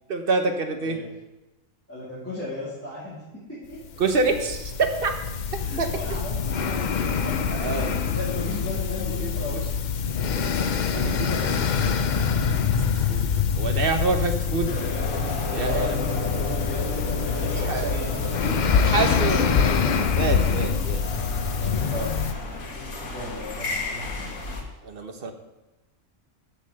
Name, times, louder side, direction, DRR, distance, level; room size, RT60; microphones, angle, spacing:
voice 1, 0.1-1.0 4.0-5.1 5.8-5.9 7.5-7.9 9.0-9.3 10.9-11.3 12.7-12.8 13.1-13.2 13.5-14.8 15.5-15.9 17.4-17.9 18.8-19.5 20.2-21.0 21.6-22.1 24.8-25.3, right 4 dB, 45° right, 6 dB, 1.1 m, -26 dB
voice 2, 1.9-3.8 5.6-9.6 11.0-11.5 15.6-20.0 21.9-22.1 23.1-24.3, left 1 dB, 10° left, -10 dB, 2.6 m, -36 dB
sound 1, 3.8-22.3, left 6 dB, 65° left, 0.4 m, -25 dB
sound 2, 14.7-24.6, left 3 dB, 85° left, 1.8 m, -33 dB
8.0 x 6.5 x 6.3 m, 1.0 s
omnidirectional pair, 1.5 m